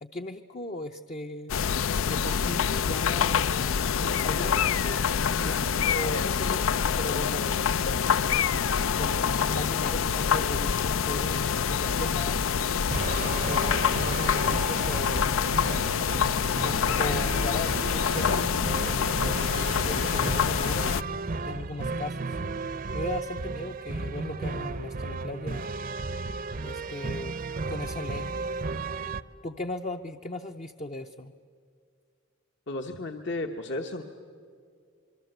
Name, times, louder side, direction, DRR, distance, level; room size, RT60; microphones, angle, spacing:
voice 1, 0.0-1.6 2.0-5.6 5.9-7.9 9.0-12.4 13.2-15.3 16.6-22.4 22.9-25.7 26.6-27.3 27.7-28.4 29.4-31.3, left 1 dB, 35° left, 6 dB, 0.6 m, -37 dB
sound 1, 1.5-21.0, left 7 dB, 85° left, 0.5 m, -26 dB
sound 2, 12.9-29.2, right 3 dB, 45° right, 0.6 m, -34 dB
voice 2, 32.7-34.0, left 2 dB, 60° left, 4 dB, 1.1 m, -33 dB
26.0 x 23.5 x 7.9 m, 2.3 s
head